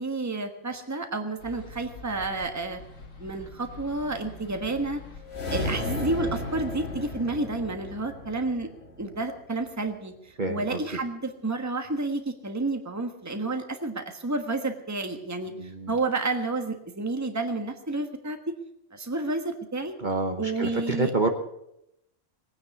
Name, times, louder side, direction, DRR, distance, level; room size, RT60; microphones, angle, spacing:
voice 1, 0.0-2.8 3.2-5.0 5.5-8.7 9.0-18.6 18.9-19.9 20.4-21.1, right 2 dB, 15° right, 6 dB, 1.3 m, -30 dB
sound 1, 1.4-7.2, left 3 dB, 85° left, 2.2 m, -46 dB
sound 2, 5.2-9.6, left 2 dB, 55° left, 2.1 m, -34 dB
voice 2, 10.4-10.8 15.5-16.0 20.0-21.3, right 3 dB, 40° right, 4 dB, 1.2 m, -28 dB
20.0 x 9.6 x 7.0 m, 0.81 s
omnidirectional pair, 1.3 m